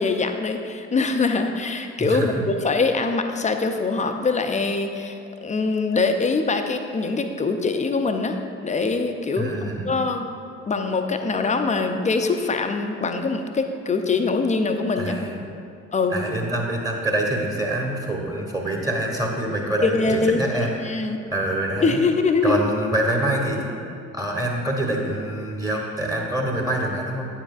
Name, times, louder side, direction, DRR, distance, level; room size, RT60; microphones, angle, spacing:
voice 1, 0.0-8.4 8.6-9.5 9.8-10.3 10.7-15.3 15.9-16.2 19.8-20.4 20.7-21.2 21.8-22.6, left 4 dB, 20° left, 6 dB, 0.6 m, -23 dB
voice 2, 9.4-10.0 15.0-15.5 16.1-20.7 21.3-22.0 22.4-23.8 24.1-27.3, right 1 dB, 10° right, -1 dB, 1.2 m, -25 dB
9.3 x 7.2 x 2.5 m, 2.4 s
figure-of-eight pair, 50°, 38 cm